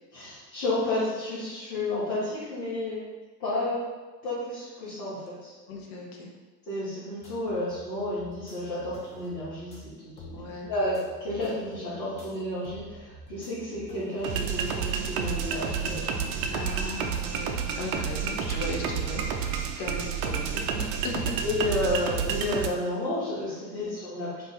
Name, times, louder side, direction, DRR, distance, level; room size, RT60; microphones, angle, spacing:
voice 1, 0.1-3.0 3.4-3.8 4.2-5.5 6.7-10.4 10.7-16.5 21.4-24.5, left 1 dB, 90° left, -13 dB, 1.1 m, -31 dB
voice 2, 5.7-6.3 10.3-10.7 16.5-21.4 23.8-23.9, left 2 dB, 55° left, 0 dB, 0.8 m, -37 dB
sound 1, 7.2-19.7, left 1 dB, 15° left, 0.5 m, -49 dB
sound 2, 14.2-22.7, right 7 dB, 60° right, 0.5 m, -30 dB
2.4 x 2.4 x 3.9 m, 1.3 s
hypercardioid pair, 65°, 50 cm